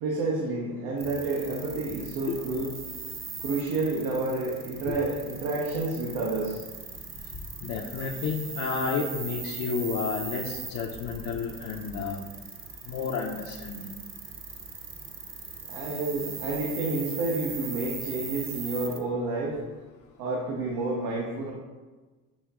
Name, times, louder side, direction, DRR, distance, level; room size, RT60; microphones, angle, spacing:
voice 1, 0.0-2.7 3.4-6.6 15.7-19.6 20.2-21.5, right 2 dB, 80° right, -3 dB, 0.8 m, -29 dB
sound 1, 1.0-19.0, right 5 dB, 35° right, 0.6 m, -40 dB
voice 2, 7.6-12.2 12.9-13.9, left 5 dB, 50° left, -1 dB, 0.5 m, -31 dB
7.2 x 2.7 x 2.3 m, 1.3 s
supercardioid pair, 75°, 38 cm